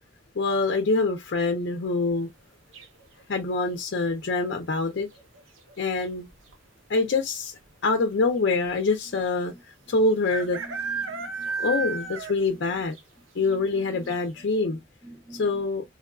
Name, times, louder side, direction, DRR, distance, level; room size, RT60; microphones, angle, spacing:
voice 1, 0.4-2.3 3.3-5.1 5.8-6.3 6.9-7.5 7.8-9.5 9.9-10.6 11.5-12.9 13.4-14.8 15.4-15.8, left 3 dB, 60° left, 0.5 m, -25 dB
sound 1, 2.7-3.2 5.0-5.4 5.7-5.8 6.0-6.5 7.3-7.4 7.6-7.7 9.3-9.4 10.3-12.6 12.9-13.0 13.5-13.6 14.1-14.2, right 4 dB, 80° right, 0.7 m, -32 dB
voice 2, 10.6-12.0 12.5-12.6 13.4-14.2 14.7-15.7, right 1 dB, 20° right, 0.4 m, -48 dB
3.5 x 2.2 x 2.3 m
head